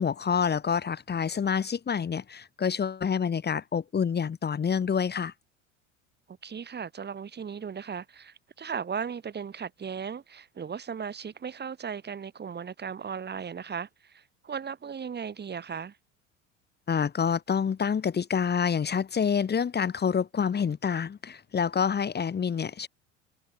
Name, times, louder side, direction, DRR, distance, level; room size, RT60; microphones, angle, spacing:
voice 1, 0.0-5.3 16.9-22.9, left 7 dB, 25° left, 3.4 m, -27 dB
voice 2, 6.4-16.0, right 7 dB, 25° right, 4.1 m, -37 dB
figure-of-eight pair, 70°, 38 cm